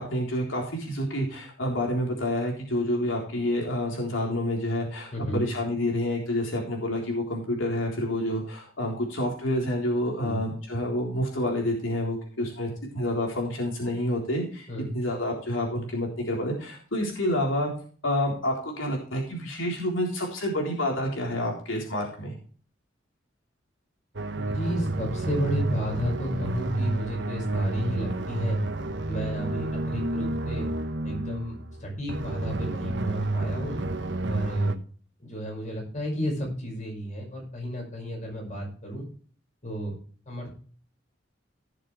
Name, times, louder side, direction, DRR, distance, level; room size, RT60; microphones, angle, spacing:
voice 1, 0.0-12.7 12.9-14.7 14.9-17.7 18.0-22.4, left 1 dB, 90° left, 0 dB, 3.7 m, -28 dB
voice 2, 5.1-5.4 10.2-10.4 14.7-14.9 24.3-28.6 29.1-30.7 31.0-33.8 34.3-34.8 35.2-39.1 39.6-39.9 40.3-40.5, equal, 40° left, 0 dB, 5.5 m, -32 dB
sound 1, 24.2-34.8, right 2 dB, 65° right, 1.1 m, -30 dB
17.0 x 6.9 x 3.2 m, 0.43 s
head